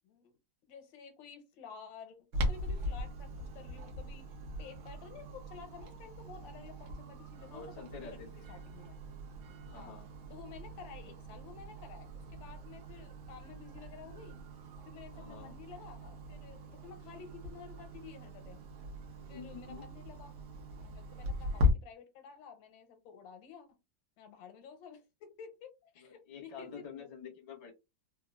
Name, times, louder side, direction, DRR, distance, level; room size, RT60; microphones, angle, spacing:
voice 1, 0.7-8.9 9.7-10.0 10.3-14.4 14.8-18.6 19.3-20.4 20.8-23.7 24.2-27.1, left 6 dB, 90° left, 1.5 m, -52 dB
Clock, 2.3-21.7, left 2 dB, 70° right, 1.3 m, -39 dB
voice 2, 7.4-8.5 9.7-10.1 15.1-15.5 19.2-19.9 26.0-27.7, left 6 dB, 35° left, 0.6 m, -48 dB
3.7 x 2.3 x 2.2 m
omnidirectional pair, 2.0 m